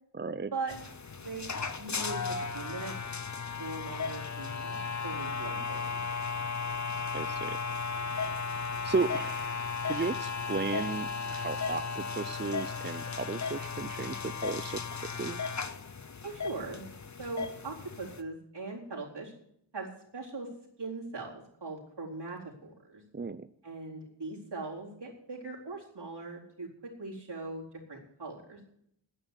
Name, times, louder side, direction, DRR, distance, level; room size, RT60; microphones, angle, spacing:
voice 1, 0.1-0.5 7.1-7.6 8.8-15.4 23.1-23.5, right 4 dB, 25° right, 13 dB, 0.5 m, -35 dB
sound 1, 0.7-18.2, left 5 dB, 40° left, 0.9 m, -35 dB
voice 2, 1.2-1.5 1.8-2.9 3.6-6.0 16.2-16.8 17.2-19.3 19.7-20.5 20.8-23.0 23.6-28.6, right 3 dB, 60° right, -2 dB, 4.2 m, -40 dB
9.9 x 9.7 x 8.2 m, 0.71 s
wide cardioid pair, 50°, 45 cm